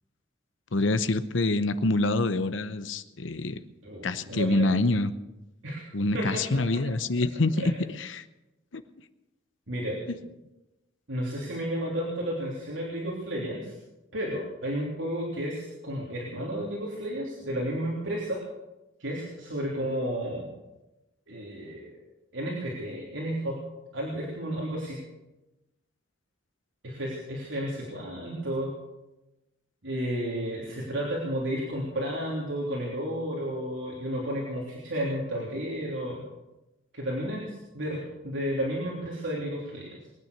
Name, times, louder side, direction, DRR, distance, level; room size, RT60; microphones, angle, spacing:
voice 1, 0.7-3.6 4.0-5.1 5.9-7.7 8.0-8.2 8.7-8.8, left 2 dB, 75° left, 13 dB, 0.9 m, -26 dB
voice 2, 3.8-4.7 5.6-5.8 6.1-6.2 7.6-7.7 9.7-10.0 11.1-13.8 14.1-18.4 19.0-20.5 21.3-21.9 22.3-23.6 23.9-25.0 26.8-28.7 29.8-36.2 36.9-40.1, equal, 75° right, -4 dB, 3.4 m, -32 dB
22.0 x 9.4 x 6.7 m, 1.0 s
head